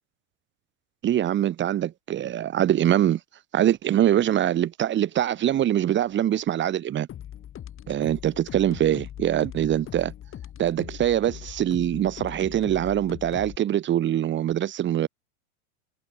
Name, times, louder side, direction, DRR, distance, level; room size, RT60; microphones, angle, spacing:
voice 1, 1.0-3.2 3.5-7.1 7.9-10.1 10.6-15.1, right 11 dB, 25° right, 1.6 m, -23 dB
sound 1, 7.1-13.6, left 11 dB, 30° left, 5.2 m, -40 dB
hypercardioid pair, 120°, 41 cm